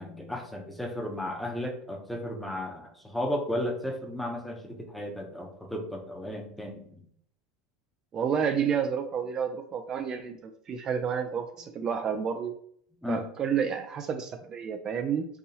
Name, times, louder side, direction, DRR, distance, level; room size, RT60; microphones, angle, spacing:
voice 1, 0.0-7.0 13.0-13.2, left 1 dB, ahead, 2 dB, 0.8 m, -34 dB
voice 2, 8.1-12.5 13.1-15.3, right 7 dB, 35° right, 7 dB, 0.3 m, -30 dB
3.9 x 2.7 x 2.8 m, 0.65 s
supercardioid pair, 110°, 2 cm